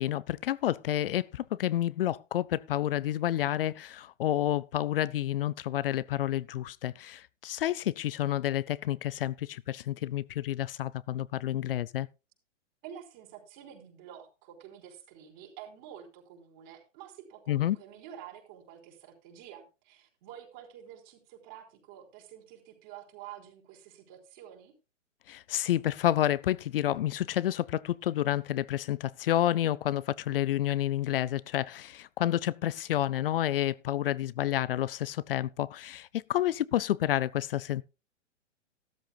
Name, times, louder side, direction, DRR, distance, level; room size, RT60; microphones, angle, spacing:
voice 1, 0.0-12.1 17.5-17.8 25.3-37.8, left 13 dB, 50° left, 0.6 m, -29 dB
voice 2, 12.8-24.7, right 10 dB, 40° right, 4.6 m, -49 dB
15.0 x 13.0 x 2.3 m
hypercardioid pair, 130°, 37 cm